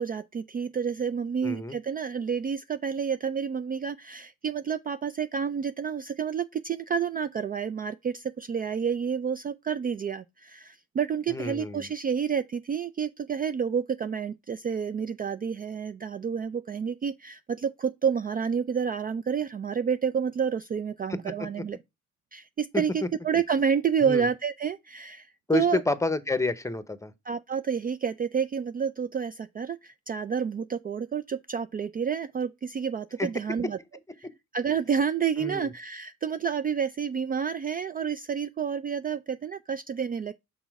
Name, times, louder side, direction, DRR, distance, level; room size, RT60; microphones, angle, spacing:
voice 1, 0.0-21.8 22.3-25.8 27.3-33.8 34.2-34.3 34.5-40.3, right 7 dB, 30° right, 0.4 m, -29 dB
voice 2, 1.4-1.8 11.3-11.9 22.7-22.8 24.0-24.3 25.5-27.1 33.2-33.3 35.4-35.7, left 2 dB, 10° left, 0.8 m, -28 dB
6.0 x 4.1 x 4.7 m
cardioid pair, 90°, 30 cm